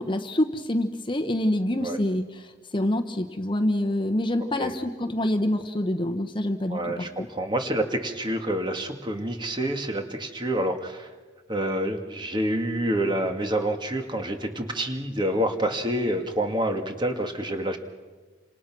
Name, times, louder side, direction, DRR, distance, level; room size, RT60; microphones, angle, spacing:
voice 1, 0.0-7.3, left 1 dB, 25° left, 6 dB, 1.1 m, -26 dB
voice 2, 6.7-11.1 11.5-17.8, right 1 dB, 25° right, 5 dB, 2.0 m, -27 dB
29.5 x 27.0 x 6.1 m, 1.4 s
head